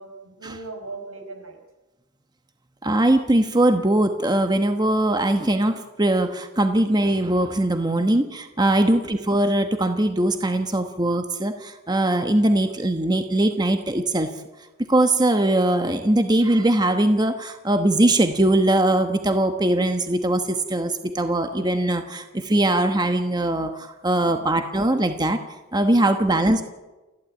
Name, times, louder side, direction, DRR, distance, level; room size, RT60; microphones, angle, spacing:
voice 1, 0.0-1.6 8.8-9.0 24.3-24.5 26.0-26.2, right 3 dB, 85° right, 4 dB, 5.3 m, -39 dB
voice 2, 2.8-14.3 14.9-25.4 25.7-26.6, right 1 dB, 20° right, 7 dB, 1.1 m, -21 dB
29.0 x 12.0 x 8.8 m, 1.1 s
head